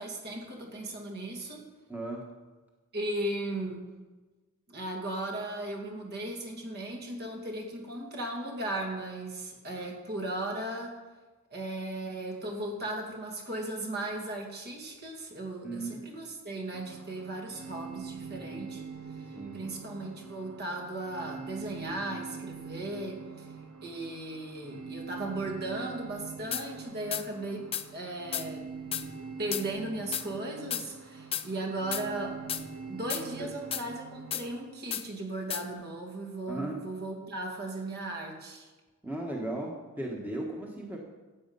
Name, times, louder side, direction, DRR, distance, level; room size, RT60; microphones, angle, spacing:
voice 1, 0.0-1.7 2.9-3.8 4.7-11.0 11.5-18.8 19.5-23.5 23.8-28.7 29.4-32.4 32.9-38.7, right 1 dB, 45° right, 1 dB, 2.4 m, -37 dB
voice 2, 1.9-2.3 15.6-16.1 19.3-19.7 33.4-33.5 36.5-36.8 39.0-41.0, right 1 dB, 10° right, -2 dB, 1.5 m, -36 dB
sound 1, 16.7-34.6, right 5 dB, 70° right, 1.1 m, -44 dB
sound 2, 26.5-26.7 27.1-27.2 27.7-27.9 28.3-28.5 28.9-29.1 29.5-29.6 30.1-30.3 30.7-30.8 31.3-31.5 31.9-32.0 32.5-32.6 33.1-33.2 33.7-33.8 34.3-34.4 34.9-35.0 35.5-35.6, left 10 dB, 25° left, 0.5 m, -33 dB
15.0 x 8.1 x 5.5 m, 1.2 s
head